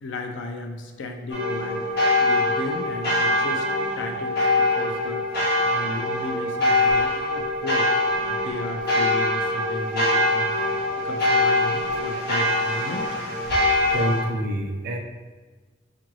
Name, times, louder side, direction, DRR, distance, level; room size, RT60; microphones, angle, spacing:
voice 1, 0.0-1.8 2.2-5.2 5.6-10.8 11.0-13.1, left 2 dB, 85° left, 4 dB, 0.4 m, -34 dB
sound 1, 1.3-14.2, left 1 dB, 55° left, 1.0 m, -23 dB
voice 2, 13.9-15.0, right 1 dB, 55° right, 3 dB, 0.5 m, -26 dB
4.6 x 2.5 x 3.0 m, 1.3 s
head